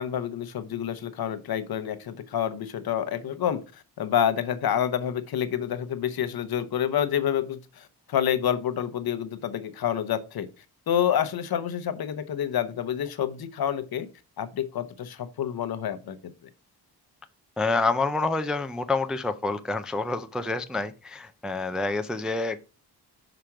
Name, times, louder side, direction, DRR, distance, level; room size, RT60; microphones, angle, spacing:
voice 1, 0.0-10.5 10.9-14.1 14.4-16.2, left 9 dB, 65° left, 0.8 m, -28 dB
voice 2, 17.6-22.6, left 3 dB, ahead, 0.3 m, -28 dB
5.9 x 5.0 x 4.7 m
wide cardioid pair, 160°, 39 cm